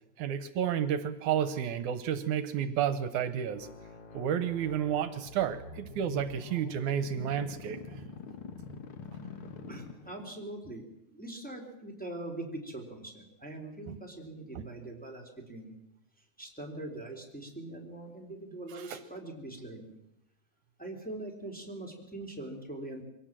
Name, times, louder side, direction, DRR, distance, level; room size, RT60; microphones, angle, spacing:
voice 1, 0.2-3.7 4.1-7.8 13.9-14.0 14.6-14.7 18.7-19.0, right 9 dB, 75° right, 12 dB, 2.3 m, -31 dB
sound 1, 3.5-10.4, left 4 dB, 50° left, 2.1 m, -46 dB
voice 2, 9.7-15.8 16.4-19.9 20.8-23.0, right 2 dB, 5° left, 1 dB, 3.4 m, -42 dB
23.5 x 17.5 x 7.5 m, 0.81 s
omnidirectional pair, 3.5 m